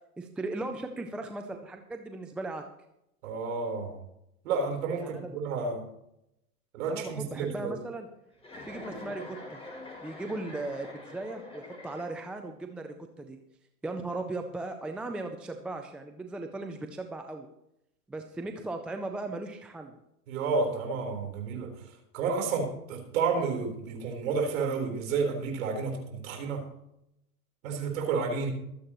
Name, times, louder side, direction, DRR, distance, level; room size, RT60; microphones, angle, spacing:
voice 1, 0.2-2.6 5.0-5.4 6.9-8.1 8.6-9.6 10.0-13.4 13.8-17.5 18.1-19.9, right 2 dB, 5° right, 5 dB, 0.3 m, -37 dB
voice 2, 3.2-4.0 4.4-5.8 6.7-7.7 20.3-21.7 22.1-26.7 27.6-28.5, right 4 dB, 60° right, 3 dB, 4.1 m, -30 dB
Chuckle chortle, 8.4-12.4, left 2 dB, 10° left, 5.3 m, -45 dB
24.5 x 8.5 x 3.0 m, 0.80 s
hypercardioid pair, 115°, 45 cm